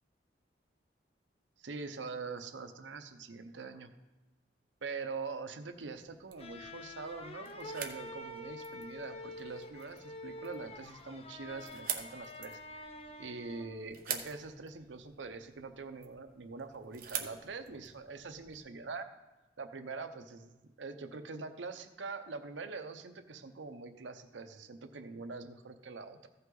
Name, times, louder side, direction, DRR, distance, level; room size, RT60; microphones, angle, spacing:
voice 1, 1.6-3.9 4.8-12.9 13.2-19.1 19.6-20.5 20.8-26.3, right 4 dB, 90° right, 8 dB, 0.7 m, -44 dB
sound 1, 5.7-18.6, right 8 dB, 50° right, 0.9 m, -46 dB
sound 2, 6.4-13.9, left 1 dB, 35° left, 0.6 m, -47 dB
15.0 x 5.5 x 3.9 m, 1.1 s
head